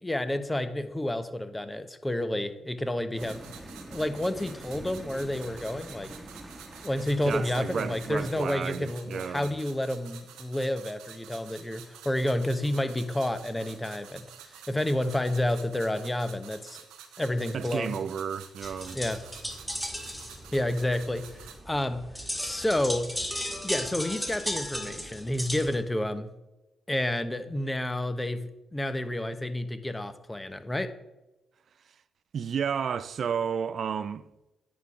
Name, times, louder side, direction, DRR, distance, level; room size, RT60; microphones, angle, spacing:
voice 1, 0.0-3.4 3.9-6.1 6.8-14.3 14.7-16.8 17.2-18.0 18.9-19.2 20.5-21.2 21.7-22.0 22.4-23.1 23.6-26.3 26.9-30.9, left 1 dB, 15° left, 0.9 m, -30 dB
sound 1, 3.1-8.5, right 1 dB, 15° right, 1.4 m, -45 dB
sound 2, 3.1-21.6, right 8 dB, 80° right, 0.9 m, -49 dB
voice 2, 7.3-9.6 17.5-19.0 32.3-34.2, right 7 dB, 60° right, 0.4 m, -32 dB
sound 3, 18.6-25.8, equal, ahead, 1.8 m, -36 dB
9.4 x 3.8 x 5.8 m
hypercardioid pair, 45°, 0 cm